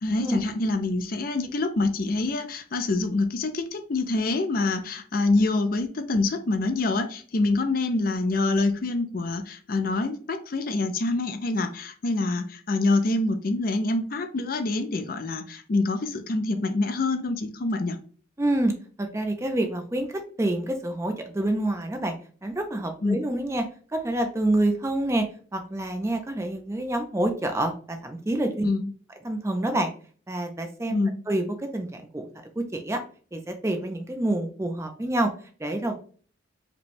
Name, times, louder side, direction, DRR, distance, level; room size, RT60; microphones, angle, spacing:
voice 1, 0.0-18.0 23.0-23.2 28.6-28.9 30.9-31.2, left 2 dB, 45° left, 8 dB, 0.4 m, -26 dB
voice 2, 18.4-22.1 22.4-23.7 23.9-28.7 29.2-29.9 30.3-32.2 32.6-33.0 33.3-35.3 35.6-36.0, right 1 dB, 15° right, 5 dB, 0.4 m, -27 dB
4.9 x 2.2 x 3.2 m, 0.43 s
head